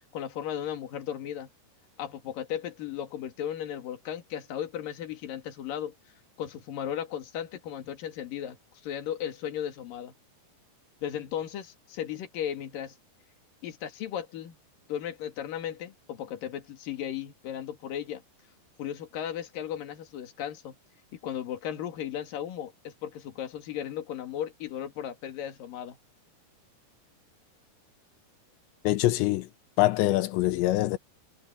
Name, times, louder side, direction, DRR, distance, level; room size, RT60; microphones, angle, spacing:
voice 1, 0.1-1.5 2.0-5.9 6.4-8.6 8.8-10.1 11.0-12.9 13.6-14.6 14.9-18.2 18.8-20.8 21.2-26.0, left 10 dB, 55° left, 3.6 m, -36 dB
voice 2, 28.8-29.5 29.8-31.0, left 16 dB, 85° left, 3.1 m, -24 dB
omnidirectional pair, 5.0 m